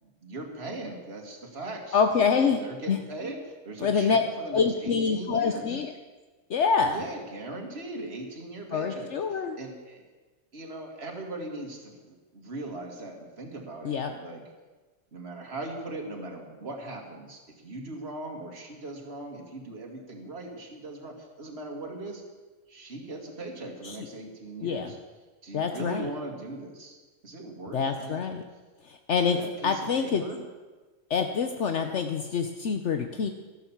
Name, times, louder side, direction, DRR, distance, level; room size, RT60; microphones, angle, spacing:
voice 1, 0.0-5.8 6.8-10.0 10.5-14.5 15.1-22.2 22.7-25.0 25.4-27.0 27.2-28.2 29.3-30.4, right 2 dB, 55° right, 1 dB, 2.5 m, -39 dB
voice 2, 1.9-2.6 2.9-3.0 3.8-4.2 4.5-5.9 6.5-7.0 8.7-9.6 13.8-14.1 23.8-24.0 24.6-24.9 25.5-26.1 27.7-28.4 28.8-29.4 29.6-30.2 31.1-33.3, left 6 dB, 65° left, 6 dB, 1.1 m, -26 dB
14.0 x 11.5 x 7.3 m, 1.3 s
omnidirectional pair, 1.3 m